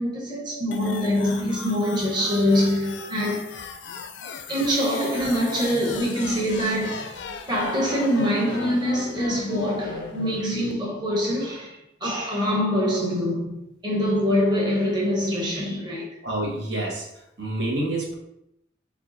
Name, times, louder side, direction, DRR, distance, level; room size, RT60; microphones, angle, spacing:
voice 1, 0.0-3.5 4.5-7.2 7.5-16.1, equal, 25° right, 1.0 m, -24 dB
sound 1, 0.7-10.7, left 5 dB, 80° left, 0.4 m, -37 dB
voice 2, 16.2-17.1 17.4-18.1, right 1 dB, 70° right, 1.1 m, -27 dB
4.5 x 2.3 x 3.8 m
head